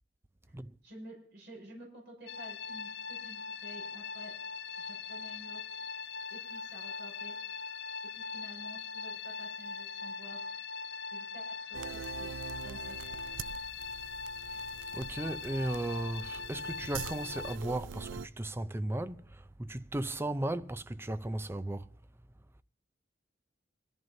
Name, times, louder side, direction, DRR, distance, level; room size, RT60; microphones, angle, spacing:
voice 1, 0.8-4.3 4.8-5.6 6.3-7.4 8.1-10.4 11.1-13.0, right 1 dB, 65° right, 5.9 m, -51 dB
sound 1, 2.3-17.6, left 5 dB, 65° left, 0.7 m, -41 dB
sound 2, 11.7-18.3, right 7 dB, 85° right, 0.4 m, -44 dB
voice 2, 14.5-21.9, right 1 dB, 15° right, 0.5 m, -36 dB
22.5 x 14.0 x 2.7 m
head